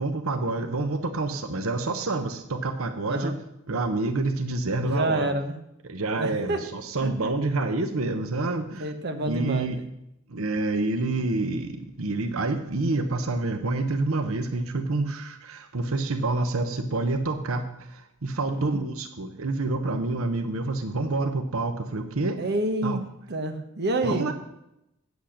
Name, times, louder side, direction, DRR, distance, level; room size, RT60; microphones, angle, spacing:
voice 1, 0.0-3.3 3.7-5.3 5.8-8.9 9.3-9.8 10.3-22.4 22.8-23.0 24.0-24.3, right 2 dB, 90° right, 8 dB, 0.9 m, -28 dB
voice 2, 4.8-5.5 6.2-6.6 7.0-7.3 8.7-9.9 18.5-18.8 22.4-23.0 23.3-24.3, right 2 dB, 50° right, 5 dB, 1.1 m, -28 dB
8.6 x 8.2 x 6.4 m, 0.84 s
head